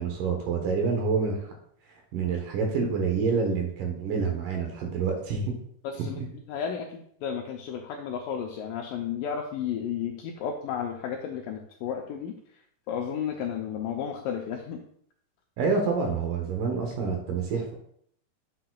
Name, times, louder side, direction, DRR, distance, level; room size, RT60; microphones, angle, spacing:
voice 1, 0.0-1.5 2.1-5.5 6.1-6.3 15.6-17.7, right 5 dB, 65° right, 2 dB, 2.4 m, -27 dB
voice 2, 5.8-6.2 6.5-12.6 12.9-14.8, left 8 dB, 80° left, 1 dB, 2.0 m, -33 dB
9.0 x 6.6 x 2.3 m, 0.65 s
omnidirectional pair, 4.5 m